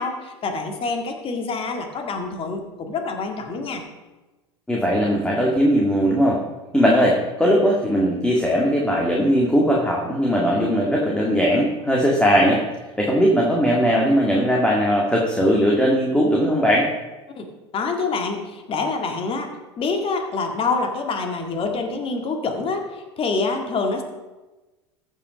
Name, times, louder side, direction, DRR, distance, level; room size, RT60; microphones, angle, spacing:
voice 1, 0.0-3.8 17.3-17.5 17.7-24.0, left 4 dB, 40° left, 4 dB, 2.0 m, -26 dB
voice 2, 4.7-6.4 6.7-12.6 13.0-16.9, equal, 5° left, -2 dB, 1.9 m, -19 dB
14.5 x 5.6 x 5.2 m, 1.1 s
hypercardioid pair, 80°, 15 cm